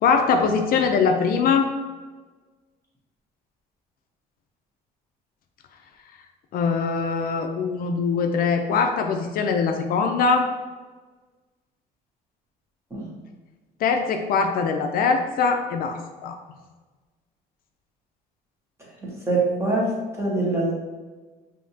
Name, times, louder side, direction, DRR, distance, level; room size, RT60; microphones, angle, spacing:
voice 1, 0.0-1.7 6.5-10.5 13.8-16.4, left 5 dB, 60° left, 5 dB, 0.4 m, -22 dB
voice 2, 19.0-19.9 20.2-20.7, right 2 dB, 15° right, -4 dB, 1.3 m, -24 dB
5.5 x 2.8 x 2.7 m, 1.3 s
cardioid pair, 110°, 17 cm